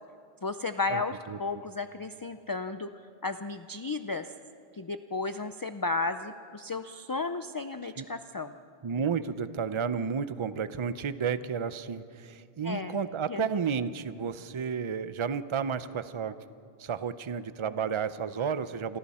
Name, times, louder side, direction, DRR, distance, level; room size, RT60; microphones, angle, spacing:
voice 1, 0.4-2.9 3.2-4.3 4.7-8.6 12.6-13.0 13.3-13.4, left 3 dB, 35° left, 9 dB, 0.4 m, -33 dB
voice 2, 8.8-16.4 16.8-19.0, right 6 dB, 35° right, 13 dB, 0.6 m, -32 dB
28.5 x 23.5 x 4.3 m, 2.4 s
omnidirectional pair, 1.0 m